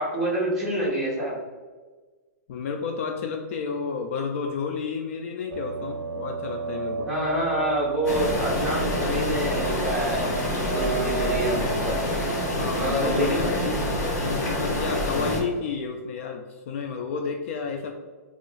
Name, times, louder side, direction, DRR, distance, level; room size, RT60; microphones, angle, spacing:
voice 1, 0.0-1.4 7.1-12.0 12.8-13.7 15.1-15.3, equal, 5° right, -7 dB, 1.0 m, -27 dB
voice 2, 2.5-7.1 12.3-13.6 14.2-17.9, left 5 dB, 50° left, 4 dB, 0.4 m, -31 dB
sound 1, 5.5-14.8, right 5 dB, 55° right, 0.4 m, -34 dB
sound 2, 8.0-15.4, left 1 dB, 75° left, 1.3 m, -27 dB
2.9 x 2.4 x 3.9 m, 1.3 s
hypercardioid pair, 155°, 9 cm